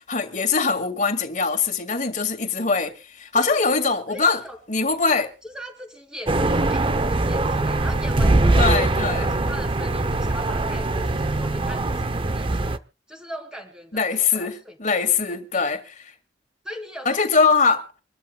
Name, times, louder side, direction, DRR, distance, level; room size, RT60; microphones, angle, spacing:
voice 1, 0.1-4.4 4.7-5.3 8.6-9.3 13.9-16.0 17.1-17.9, left 4 dB, 45° left, 1.9 m, -22 dB
voice 2, 3.3-3.7 4.1-4.6 5.4-12.8 13.1-15.1 15.5-15.7 16.6-17.2, equal, 5° right, 3.3 m, -39 dB
sound 1, 6.3-12.8, right 2 dB, 30° right, 0.6 m, -22 dB
26.5 x 13.0 x 2.2 m
head